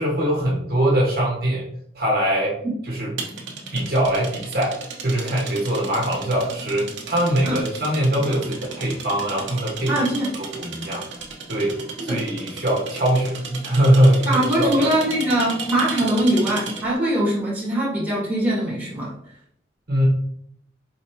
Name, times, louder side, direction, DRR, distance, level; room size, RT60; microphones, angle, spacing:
voice 1, 0.0-1.6 1.9-2.6 2.8-3.1 3.7-4.8 5.0-9.9 10.3-11.0 11.5-14.9 19.9-20.1, right 1 dB, 55° right, -4 dB, 1.1 m, -22 dB
sound 1, 3.2-17.0, right 4 dB, 85° right, 0.9 m, -34 dB
voice 2, 9.9-10.3 12.0-12.2 14.3-19.1, right 1 dB, 10° right, -6 dB, 1.7 m, -22 dB
4.7 x 3.3 x 2.9 m, 0.71 s
head